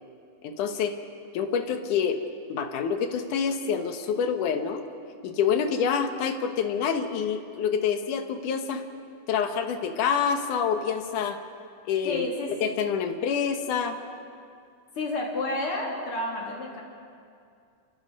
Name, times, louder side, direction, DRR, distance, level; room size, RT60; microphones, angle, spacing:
voice 1, 0.4-1.0 1.3-2.2 2.5-4.8 5.2-8.8 9.3-11.4 11.9-12.3 12.6-14.0, left 7 dB, 65° left, 7 dB, 2.5 m, -27 dB
voice 2, 12.0-12.6 14.9-16.8, left 2 dB, 40° left, -1 dB, 3.6 m, -30 dB
28.0 x 26.0 x 5.4 m, 2.4 s
omnidirectional pair, 4.2 m